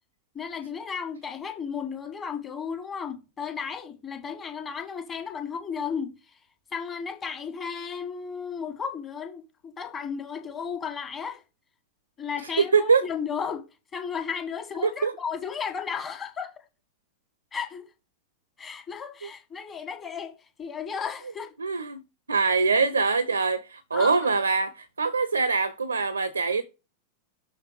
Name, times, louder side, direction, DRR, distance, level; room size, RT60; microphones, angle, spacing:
voice 1, 0.3-6.4 6.7-11.4 12.2-13.6 13.9-16.5 17.5-17.9 18.6-21.5 23.9-24.3, left 6 dB, 20° left, 1.3 m, -34 dB
voice 2, 12.6-13.0 14.8-15.1 21.6-22.0 22.3-26.6, right 4 dB, 75° right, 0.5 m, -23 dB
6.4 x 3.5 x 4.8 m
figure-of-eight pair, 90°, 0 cm